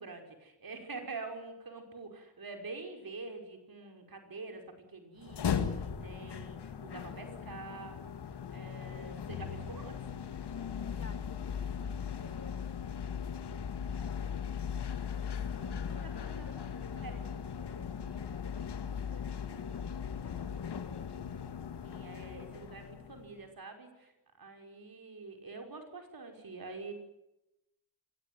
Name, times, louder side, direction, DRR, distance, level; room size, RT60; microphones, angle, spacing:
voice 1, 0.0-8.0 8.5-10.0 15.6-16.6 17.0-17.2 21.8-24.1 24.4-26.9, right 3 dB, 60° right, 5 dB, 5.6 m, -46 dB
sound 1, 5.2-23.3, left 7 dB, 80° left, 2.0 m, -38 dB
voice 2, 7.0-7.6 10.9-13.4 14.0-14.6 15.2-19.3 19.6-21.5 24.0-24.1, left 2 dB, 40° left, 10 dB, 4.4 m, -56 dB
24.0 x 18.0 x 9.6 m, 0.89 s
cardioid pair, 40°, 40 cm